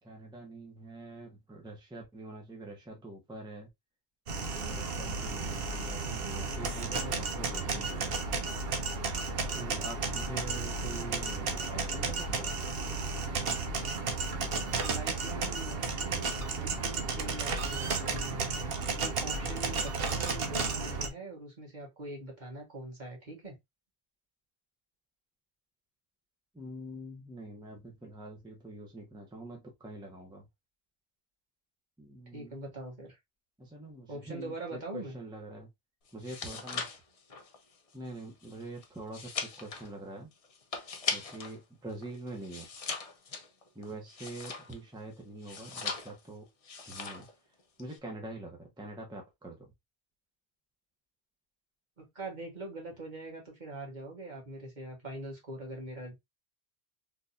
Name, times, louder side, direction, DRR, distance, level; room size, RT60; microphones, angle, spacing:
voice 1, 0.0-3.7 4.5-8.2 9.6-12.6 26.5-30.5 32.0-32.6 33.6-35.7 36.1-36.9 37.9-40.3 41.1-42.7 43.7-46.5 46.9-47.3 47.8-49.7, right 2 dB, 5° right, 0.8 m, -45 dB
sound 1, 4.3-21.1, right 4 dB, 65° right, 0.9 m, -33 dB
voice 2, 14.8-16.3 16.6-18.4 19.0-23.5 32.3-33.2 34.1-35.1 52.0-56.1, right 2 dB, 45° right, 1.6 m, -43 dB
sound 2, 36.1-41.6 41.9-44.9 45.4-46.3 46.6-47.3 47.6-48.0, left 5 dB, 40° left, 0.6 m, -39 dB
3.7 x 2.8 x 2.5 m
omnidirectional pair, 1.1 m